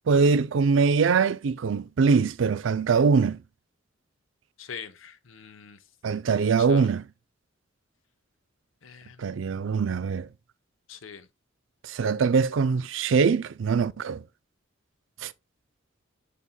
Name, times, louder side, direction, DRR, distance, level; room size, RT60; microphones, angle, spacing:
voice 1, 0.1-3.4 6.0-7.0 9.2-10.3 11.9-14.2 15.2-15.3, right 5 dB, 70° right, 0.4 m, -23 dB
voice 2, 4.6-5.8 6.3-6.9 8.8-9.5 10.9-11.3, left 6 dB, 90° left, 0.9 m, -44 dB
8.5 x 5.4 x 2.2 m
head